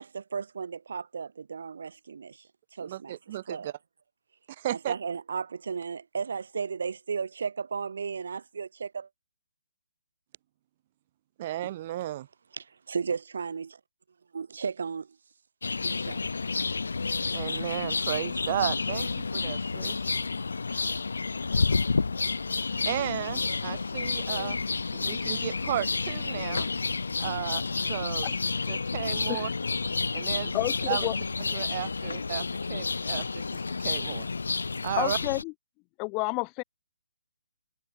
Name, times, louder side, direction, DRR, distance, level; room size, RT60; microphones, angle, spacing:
voice 1, 0.0-2.5 2.7-3.7 4.7-9.1 11.6-11.7 12.5-13.8 14.3-15.2 15.8-16.2, right 5 dB, 65° right, 1.1 m, -35 dB
voice 2, 2.8-3.7 4.6-4.9 11.4-12.3 17.3-20.0 22.8-24.6 24.9-26.7 27.2-27.6 27.9-28.3 28.7-29.5 30.1-30.5 30.9-31.1 31.5-32.4 32.7-33.4 33.8-34.3 34.8-35.2, right 13 dB, 35° right, 1.7 m, -33 dB
sound 1, 15.6-35.4, left 4 dB, 75° left, 1.7 m, -30 dB
voice 3, 30.5-31.2 34.9-35.5 36.0-36.6, left 30 dB, 25° left, 0.7 m, -30 dB
figure-of-eight pair, 140°, 0 cm